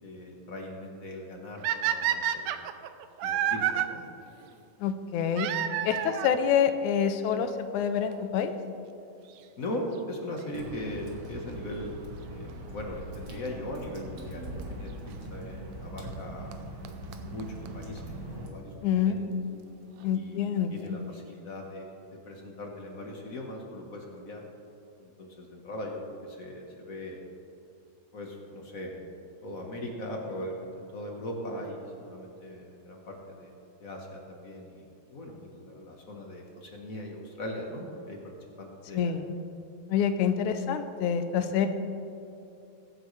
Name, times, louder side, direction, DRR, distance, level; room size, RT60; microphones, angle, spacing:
voice 1, 0.0-2.5 3.2-4.0 9.6-12.0 12.2-16.6 17.2-19.2 20.1-24.4 25.0-27.2 28.1-33.5 33.8-39.1, left 1 dB, 60° left, 0 dB, 0.9 m, -40 dB
sound 1, 1.6-3.9 5.3-6.4 7.3-7.4 8.1-8.2 8.4-8.5 10.4-10.6 13.5-13.6 14.6-14.7 16.1-16.2 16.5-16.6 16.8-16.9 17.1-17.2 17.4-17.5 17.7-17.8 18.0-18.1, right 10 dB, 80° right, 1.7 m, -29 dB
voice 2, 4.8-5.5 5.8-8.5 18.8-19.2 20.0-20.7 38.9-39.3 39.9-41.7, left 8 dB, 85° left, 8 dB, 2.1 m, -27 dB
Water / Drip, 10.5-18.5, right 1 dB, 45° right, 2.1 m, -41 dB
22.5 x 9.1 x 3.3 m, 2.7 s
omnidirectional pair, 3.5 m